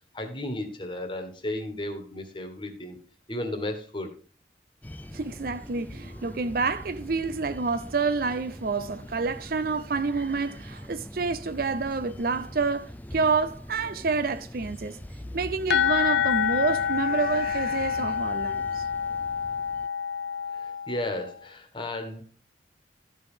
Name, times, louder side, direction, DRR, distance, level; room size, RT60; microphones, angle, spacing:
voice 1, 0.1-3.0 3.3-4.1 20.5-22.2, left 1 dB, 25° left, 1.5 m, -34 dB
sound 1, 4.8-19.9, left 1 dB, 10° left, 0.5 m, -43 dB
voice 2, 5.1-15.0 15.3-18.8, right 4 dB, 50° right, 0.5 m, -28 dB
sound 2, 15.7-21.3, left 7 dB, 70° left, 0.6 m, -27 dB
13.0 x 5.5 x 4.9 m
head